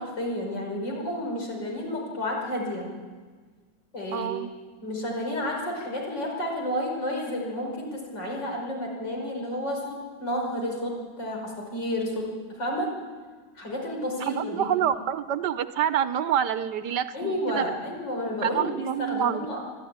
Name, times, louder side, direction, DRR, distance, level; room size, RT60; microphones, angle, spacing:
voice 1, 0.0-2.9 3.9-4.4 4.8-12.9 13.6-14.7 17.1-19.6, left 1 dB, 90° left, 0 dB, 5.8 m, -31 dB
voice 2, 4.1-4.5 14.3-17.7 18.4-19.5, right 9 dB, 75° right, 12 dB, 1.5 m, -27 dB
25.5 x 12.5 x 9.5 m, 1.5 s
omnidirectional pair, 1.9 m